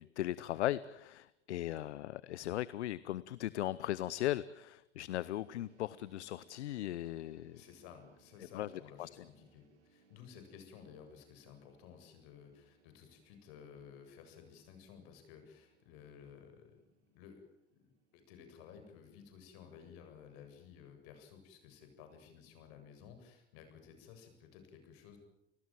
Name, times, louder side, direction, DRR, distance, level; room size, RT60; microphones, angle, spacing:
voice 1, 0.0-7.6 8.5-8.7 9.0-9.3, left 14 dB, 75° left, 19 dB, 0.9 m, -38 dB
sound 1, 5.2-20.2, right 6 dB, 85° right, 4.1 m, -70 dB
voice 2, 7.5-16.8 17.1-17.4 17.7-25.2, left 7 dB, 60° left, 7 dB, 7.9 m, -55 dB
29.5 x 20.0 x 7.7 m, 0.83 s
hypercardioid pair, 90°, 34 cm